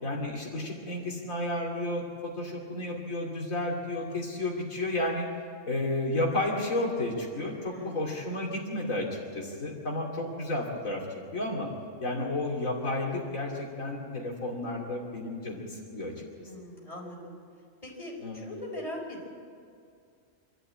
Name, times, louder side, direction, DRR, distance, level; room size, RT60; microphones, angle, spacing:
voice 1, 0.0-5.2 5.6-11.7 12.0-16.5 18.2-18.4, left 1 dB, 75° left, -2 dB, 3.1 m, -32 dB
voice 2, 16.4-17.3 17.8-19.3, left 1 dB, 25° left, -2 dB, 4.7 m, -40 dB
25.5 x 13.5 x 8.7 m, 2.3 s
omnidirectional pair, 1.4 m